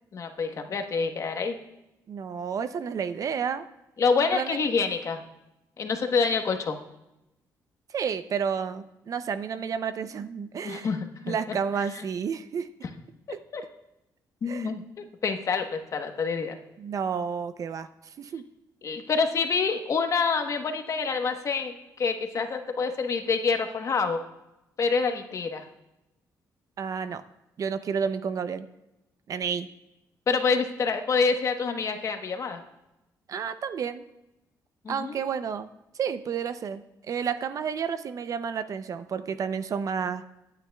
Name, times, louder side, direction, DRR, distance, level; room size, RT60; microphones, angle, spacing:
voice 1, 0.1-1.5 4.0-5.2 5.8-6.8 10.6-11.3 13.5-13.6 14.4-16.6 18.8-24.2 24.8-25.6 30.3-32.6 34.8-35.2, left 5 dB, 45° left, 5 dB, 1.1 m, -27 dB
voice 2, 2.1-3.6 4.3-4.6 7.9-10.9 11.3-12.7 13.3-13.4 14.5-14.7 16.8-18.4 26.8-27.2 27.6-28.7 29.3-29.7 33.3-34.1 34.9-35.7 35.9-40.2, right 6 dB, 50° right, 11 dB, 0.6 m, -31 dB
23.0 x 9.2 x 2.3 m, 0.92 s
cardioid pair, 120°, 7 cm